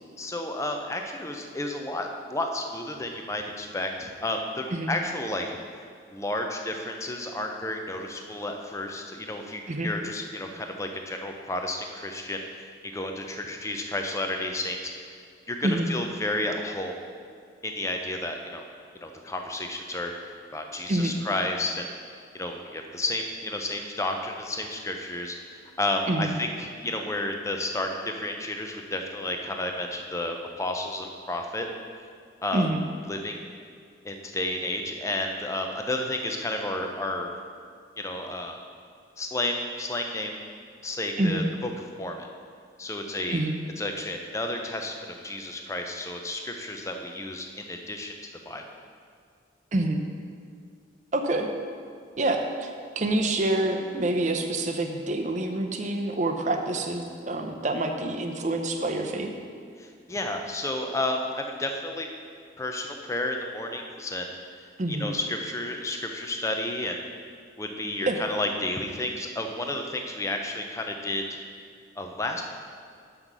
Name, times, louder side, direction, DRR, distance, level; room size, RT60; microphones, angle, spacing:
voice 1, 0.2-5.5 6.1-14.9 15.5-17.0 17.6-18.7 19.0-20.1 20.5-21.9 22.3-25.4 25.8-31.7 32.4-32.7 33.1-33.4 34.0-37.3 38.0-38.6 39.2-40.4 40.8-41.7 42.0-42.3 42.8-43.4 43.8-48.1 48.5-48.6 59.8-62.1 62.6-64.3 64.9-67.0 67.6-71.2 72.0-72.4, left 1 dB, 15° left, 3 dB, 0.6 m, -31 dB
voice 2, 51.1-51.5 52.2-59.3 64.8-65.1 68.0-68.2, right 2 dB, 40° right, 4 dB, 0.6 m, -27 dB
6.7 x 5.7 x 6.0 m, 2.2 s
head